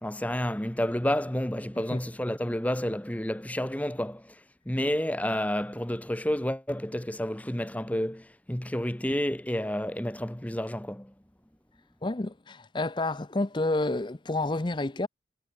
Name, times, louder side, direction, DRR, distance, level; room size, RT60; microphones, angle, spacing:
voice 1, 0.0-4.4 4.7-11.1, equal, 10° left, 1.0 m, -30 dB
voice 2, 12.0-15.1, left 2 dB, 25° left, 0.6 m, -29 dB
head